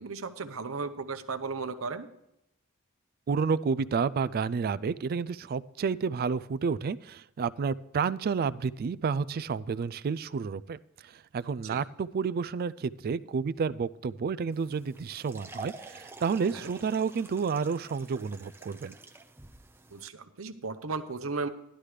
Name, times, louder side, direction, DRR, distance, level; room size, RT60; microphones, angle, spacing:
voice 1, 0.0-2.1 11.6-11.8 16.5-16.7 19.9-21.5, right 4 dB, 75° right, 10 dB, 0.8 m, -35 dB
voice 2, 3.3-18.9, right 5 dB, 45° right, 17 dB, 0.3 m, -30 dB
sound 1, 14.5-20.1, right 2 dB, 10° right, 0.6 m, -49 dB
13.5 x 11.5 x 3.3 m, 0.84 s
head